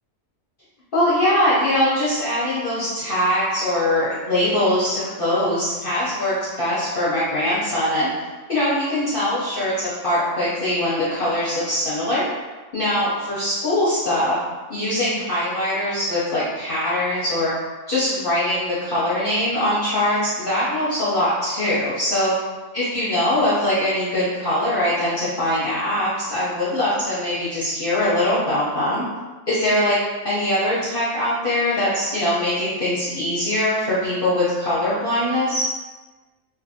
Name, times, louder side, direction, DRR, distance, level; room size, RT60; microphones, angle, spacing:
voice 1, 0.9-8.1 8.5-12.2 12.7-14.4 14.7-17.5 17.9-22.3 22.7-29.0 29.5-30.0 30.2-35.7, left 1 dB, 50° left, -10 dB, 0.7 m, -22 dB
2.6 x 2.5 x 2.6 m, 1.2 s
omnidirectional pair, 1.5 m